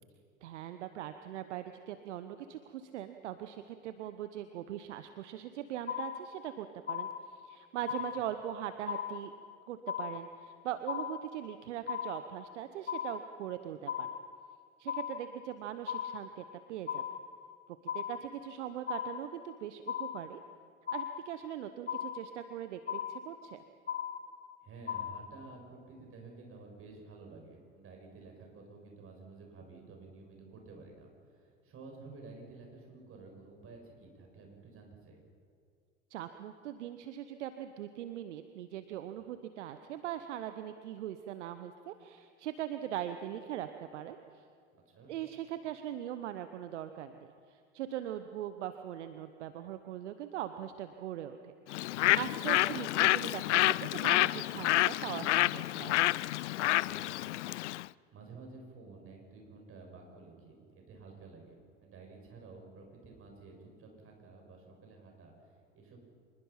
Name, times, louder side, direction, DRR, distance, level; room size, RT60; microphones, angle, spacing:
voice 1, 0.4-9.3 9.7-14.1 14.8-17.0 17.9-20.4 20.9-23.6 36.1-44.4 45.1-51.5 52.1-56.0, right 11 dB, 65° right, 9 dB, 1.1 m, -41 dB
sound 1, 5.9-6.5 6.9-7.5 7.9-8.5 8.9-9.5 9.9-10.5 10.9-11.5 11.9-12.5 12.9-13.5 13.9-14.5 14.9-15.5 15.9-16.5 16.9-17.5 17.9-18.5 18.9-19.5 19.9-20.5 20.9-21.5 21.9-22.5 22.9-23.5 23.9-24.5 24.9-25.5, left 9 dB, 25° left, 1.3 m, -38 dB
voice 2, 24.6-35.2 39.2-39.3 44.9-45.1 56.8-66.1, right 3 dB, 35° right, 1 dB, 6.9 m, -52 dB
Bird, 51.7-57.9, left 16 dB, 65° left, 0.5 m, -29 dB
26.0 x 21.5 x 5.8 m, 2.2 s
figure-of-eight pair, 80°, 38 cm